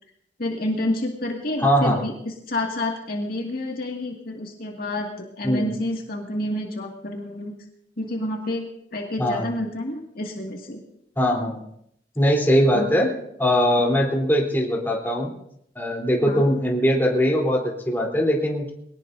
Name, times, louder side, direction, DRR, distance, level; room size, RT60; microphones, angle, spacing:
voice 1, 0.4-7.5 8.0-10.8 12.7-12.9 16.3-16.4, left 1 dB, 55° left, 0 dB, 2.1 m, -29 dB
voice 2, 1.6-2.0 5.4-5.7 9.2-9.5 11.2-11.6 12.2-13.1 13.4-15.3 15.8-18.7, equal, 10° left, -2 dB, 3.5 m, -21 dB
23.0 x 18.5 x 2.7 m, 0.74 s
head